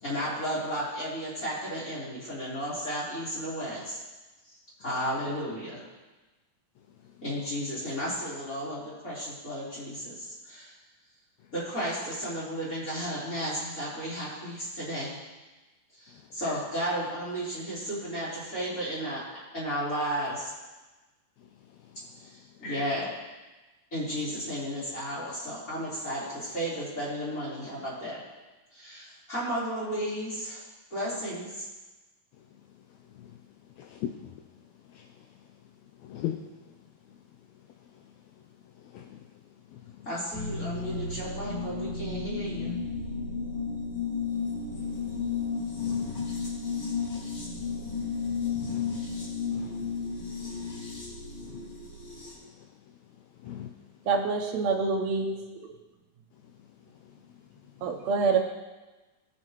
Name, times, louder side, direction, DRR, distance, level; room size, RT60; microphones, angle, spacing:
voice 1, 0.0-4.0 4.8-5.8 7.2-10.7 11.5-15.2 16.0-19.2 19.5-20.5 22.6-23.1 23.9-28.2 28.7-30.6 30.9-31.6 40.0-42.8, equal, 25° left, -9 dB, 4.1 m, -33 dB
voice 2, 22.6-22.9 33.1-33.3 33.8-34.4 34.9-35.1 36.0-36.4 38.9-39.2 39.7-39.9 44.8-45.1 45.7-46.3 48.5-49.0 49.5-49.9 50.4-50.5 51.4-51.7 52.6-52.7 53.4-53.7, left 9 dB, 80° left, 4 dB, 1.7 m, -39 dB
sound 1, 40.3-52.3, left 5 dB, 65° left, 3.9 m, -33 dB
voice 3, 54.1-55.4 55.6-55.7 57.8-58.4, right 4 dB, 70° right, 3 dB, 1.8 m, -26 dB
19.0 x 6.5 x 3.1 m, 1.2 s
omnidirectional pair, 3.6 m